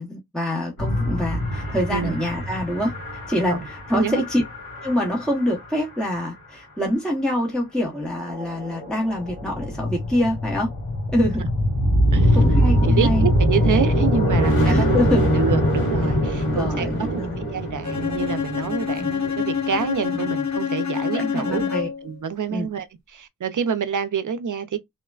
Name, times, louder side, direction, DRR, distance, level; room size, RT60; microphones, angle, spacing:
voice 1, 0.0-2.9 3.3-4.4 4.8-10.7 11.1-11.4 12.3-13.3 14.6-15.2 16.5-17.4 19.0-19.1 20.1-20.3 21.1-21.9 22.5-22.7, left 1 dB, ahead, 0.8 m, -25 dB
sound 1, 0.8-5.7 8.2-19.7, equal, 80° left, 1.7 m, -23 dB
voice 2, 12.8-14.9 15.4-21.6 22.0-24.8, right 6 dB, 60° right, 0.5 m, -27 dB
Bowed string instrument, 17.8-22.1, left 7 dB, 50° left, 1.1 m, -26 dB
3.1 x 2.1 x 2.3 m
wide cardioid pair, 75°, 36 cm